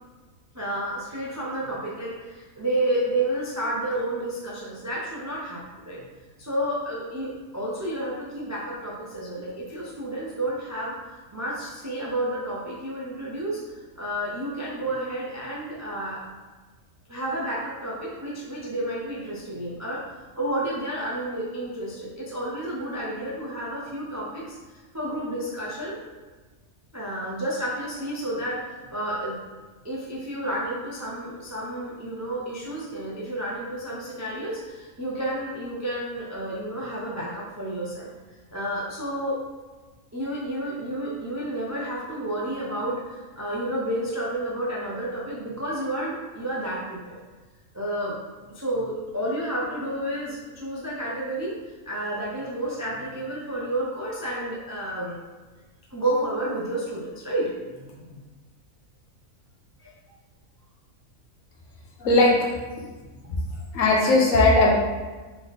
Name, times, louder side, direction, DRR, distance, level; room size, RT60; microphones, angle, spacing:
voice 1, 0.5-6.1 6.4-10.9 11.3-13.6 14.0-16.2 17.1-20.0 20.4-24.6 24.9-26.1 26.9-29.4 29.8-38.1 38.5-39.4 40.1-47.2 47.7-48.2 48.5-51.5 51.9-55.2 55.9-58.2 59.8-59.9 63.2-63.4, right 1 dB, 25° right, -5 dB, 0.3 m, -30 dB
voice 2, 62.0-62.5 63.7-64.7, left 2 dB, 65° left, -2 dB, 1.2 m, -18 dB
3.7 x 3.4 x 4.0 m, 1.3 s
omnidirectional pair, 1.5 m